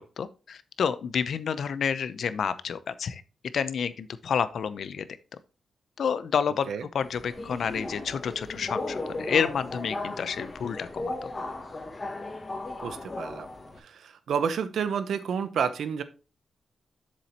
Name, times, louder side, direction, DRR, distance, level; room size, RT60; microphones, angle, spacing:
voice 1, 0.0-3.2 3.5-5.1 6.0-11.3, left 7 dB, 75° left, 14 dB, 0.6 m, -29 dB
Subway metro underground, 7.0-13.8, left 2 dB, 35° left, 1.8 m, -36 dB
voice 2, 12.8-13.5 13.8-16.0, right 7 dB, 80° right, 12 dB, 0.8 m, -30 dB
7.4 x 7.1 x 2.9 m, 0.33 s
cardioid pair, 85°, 0 cm